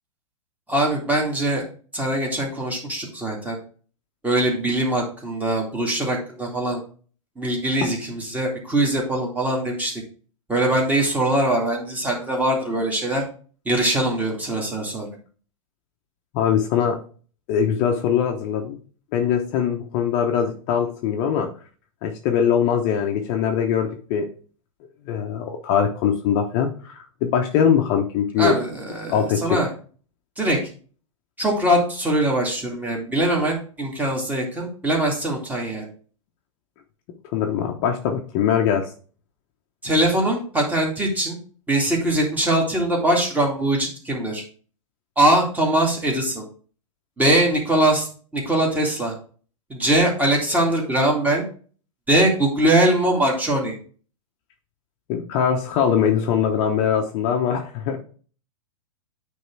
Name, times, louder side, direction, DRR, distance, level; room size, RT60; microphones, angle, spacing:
voice 1, 0.7-1.6 1.9-3.6 4.2-6.8 7.4-10.0 10.5-13.2 13.6-15.1 28.4-29.7 30.4-30.6 31.4-35.8 39.8-41.4 41.7-44.4 45.2-46.4 47.2-48.1 48.3-49.1 49.7-51.4 52.1-53.7, right 1 dB, 10° right, -1 dB, 2.5 m, -22 dB
voice 2, 16.3-17.0 17.5-18.8 19.1-21.5 22.0-24.3 25.1-28.6 29.1-29.6 37.3-38.9 55.1-58.0, left 8 dB, 40° left, 3 dB, 1.1 m, -22 dB
9.2 x 3.6 x 4.8 m, 0.40 s
figure-of-eight pair, 110°, 18 cm